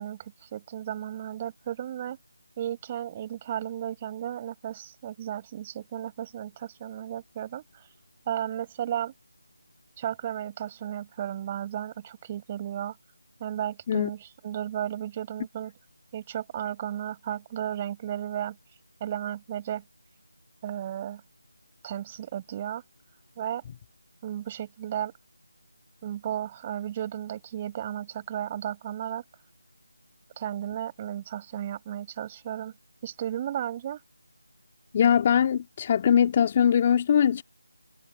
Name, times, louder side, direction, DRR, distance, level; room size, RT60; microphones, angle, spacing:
voice 1, 0.0-2.2 2.6-7.6 8.3-9.1 10.0-13.0 13.4-15.7 16.1-18.6 19.0-19.8 20.6-21.2 21.8-22.8 23.4-23.6 24.2-25.1 26.0-29.2 30.4-32.7 33.0-34.0, right 11 dB, 20° right, 5.9 m, -34 dB
voice 2, 34.9-37.4, left 8 dB, 25° left, 2.6 m, -21 dB
figure-of-eight pair, 165°, 0 cm